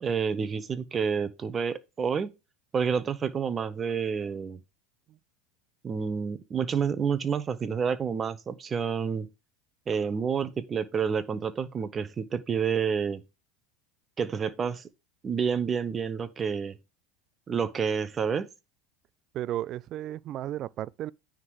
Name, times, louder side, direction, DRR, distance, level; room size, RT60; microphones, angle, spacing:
voice 1, 0.0-2.3 2.7-4.6 5.8-9.3 9.9-13.2 14.2-14.9 15.2-16.8 17.5-18.5, right 6 dB, 30° right, 0.8 m, -29 dB
voice 2, 19.3-21.1, right 12 dB, 50° right, 0.3 m, -34 dB
9.6 x 3.7 x 4.8 m
hypercardioid pair, 85°, 0 cm